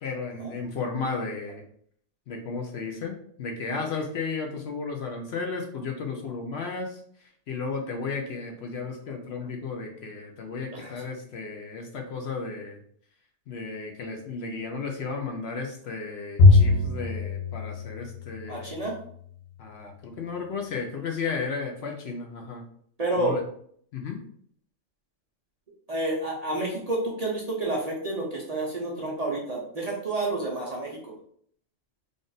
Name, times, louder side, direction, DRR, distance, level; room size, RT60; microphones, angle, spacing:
voice 1, 0.0-1.6 2.3-12.8 13.5-18.8 19.6-22.6 23.2-23.4 23.9-24.2, left 4 dB, 60° left, 3 dB, 0.8 m, -34 dB
Bowed string instrument, 16.4-18.9, left 3 dB, 80° left, 1.3 m, -21 dB
voice 2, 18.5-19.0 23.0-23.3 25.9-31.1, right 2 dB, 40° right, -3 dB, 0.6 m, -29 dB
3.5 x 2.4 x 3.9 m, 0.63 s
omnidirectional pair, 1.3 m